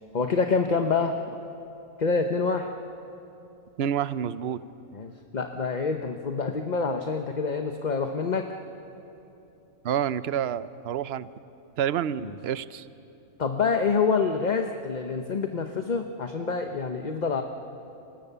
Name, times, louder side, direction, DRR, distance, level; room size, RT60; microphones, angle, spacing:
voice 1, 0.1-1.2 2.0-2.7 4.9-8.4 12.2-12.3 13.4-17.4, left 4 dB, 35° left, 5 dB, 1.0 m, -26 dB
voice 2, 3.8-4.6 9.8-11.3 11.8-12.9, right 9 dB, 55° right, 15 dB, 0.8 m, -28 dB
30.0 x 25.0 x 6.9 m, 2.9 s
omnidirectional pair, 1.5 m